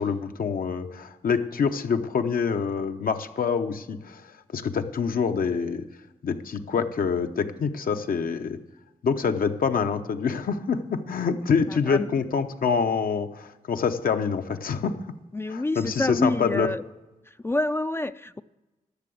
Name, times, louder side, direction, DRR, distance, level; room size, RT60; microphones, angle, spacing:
voice 1, 0.0-4.2 4.5-5.8 6.2-8.6 9.0-15.2 15.5-16.7, left 6 dB, 70° left, 8 dB, 0.8 m, -26 dB
voice 2, 15.3-16.8 17.4-18.4, left 2 dB, 15° left, 13 dB, 0.3 m, -27 dB
11.5 x 6.8 x 7.7 m, 1.1 s
cardioid pair, 65°, 15 cm